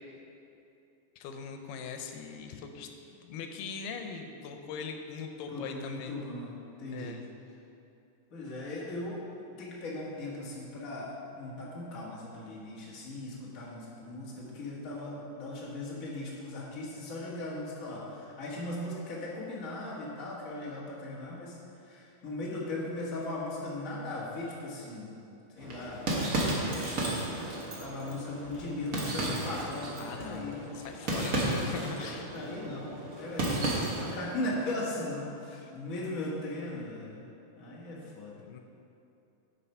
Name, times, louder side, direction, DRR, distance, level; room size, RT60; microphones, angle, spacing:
voice 1, 1.2-6.2 6.9-7.3 30.0-32.3 35.5-35.7 38.0-38.6, left 5 dB, 90° left, 5 dB, 2.3 m, -41 dB
voice 2, 5.5-7.2 8.3-9.2 9.5-21.6 21.8-25.1 25.6-26.0 26.5-26.9 27.6-31.7 32.3-37.2 37.6-38.4, left 2 dB, 35° left, -5 dB, 1.5 m, -38 dB
sound 1, 25.6-34.2, right 2 dB, 60° right, 0.9 m, -33 dB
10.0 x 5.4 x 5.5 m, 2.8 s
omnidirectional pair, 3.7 m